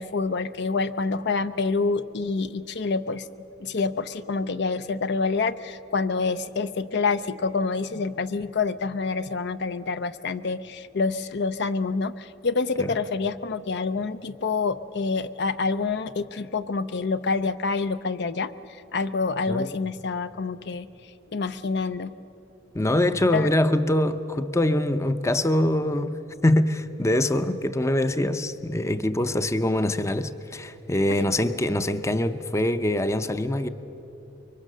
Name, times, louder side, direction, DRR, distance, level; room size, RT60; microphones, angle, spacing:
voice 1, 0.0-3.3 3.6-20.9 21.3-22.1 23.3-23.5 31.2-31.3, left 4 dB, 60° left, 0.6 m, -27 dB
voice 2, 22.7-33.7, left 1 dB, 15° left, 0.6 m, -24 dB
24.5 x 23.5 x 6.6 m
head